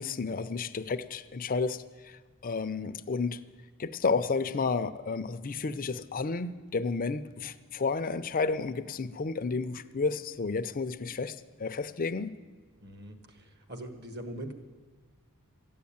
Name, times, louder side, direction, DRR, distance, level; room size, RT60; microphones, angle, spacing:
voice 1, 0.0-3.4 3.8-12.3, left 4 dB, 40° left, 11 dB, 0.5 m, -31 dB
voice 2, 12.8-13.2 13.7-14.5, right 1 dB, 50° right, 7 dB, 1.4 m, -40 dB
13.5 x 9.4 x 8.7 m, 1.5 s
head